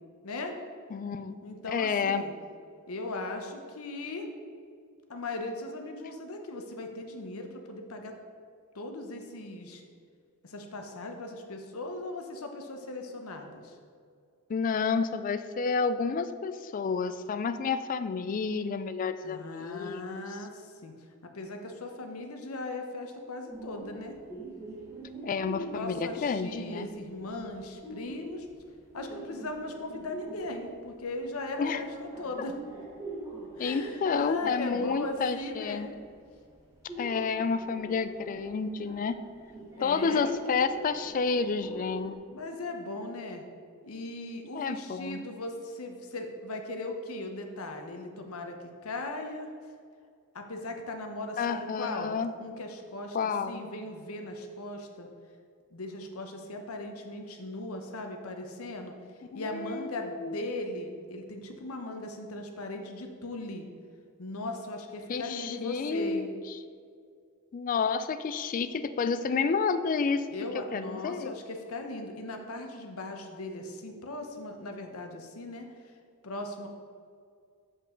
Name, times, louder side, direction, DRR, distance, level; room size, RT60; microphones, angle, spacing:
voice 1, 0.2-0.5 1.4-2.3 2.9-4.3 5.1-8.2 8.7-9.8 10.4-13.7 19.2-20.9 21.2-24.2 25.7-28.5 28.9-32.6 33.6-36.0 39.8-40.3 42.3-43.4 43.8-48.6 48.8-49.5 50.3-53.2 53.5-55.1 55.7-58.9 59.3-63.6 64.2-66.3 70.3-75.7 76.2-76.7, left 2 dB, 80° left, 4 dB, 0.8 m, -38 dB
voice 2, 0.9-1.4 1.7-2.2 14.5-20.3 25.2-26.9 31.6-31.8 33.6-35.9 37.0-39.2 39.8-42.2 44.5-45.2 51.4-52.3 53.1-53.7 59.3-60.4 65.1-66.6 67.5-70.3 70.5-71.3, left 5 dB, 40° left, 11 dB, 0.3 m, -30 dB
sound 1, 23.5-42.1, right 2 dB, 15° right, 1.4 m, -43 dB
7.5 x 5.3 x 3.8 m, 2.2 s
head